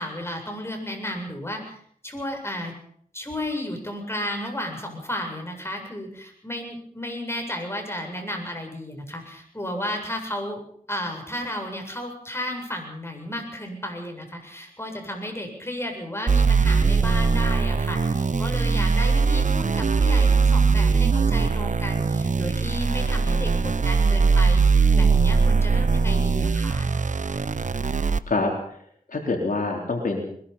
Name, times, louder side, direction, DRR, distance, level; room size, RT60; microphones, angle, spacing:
voice 1, 0.0-1.8 2.0-2.7 3.1-10.6 10.9-26.9, left 1 dB, 15° left, 3 dB, 7.8 m, -33 dB
sound 1, 16.3-28.2, right 4 dB, 60° right, 1.0 m, -21 dB
voice 2, 28.3-28.8 29.1-30.3, left 3 dB, 70° left, 1 dB, 3.9 m, -26 dB
22.0 x 21.5 x 5.7 m, 0.63 s
cardioid pair, 50°, 15 cm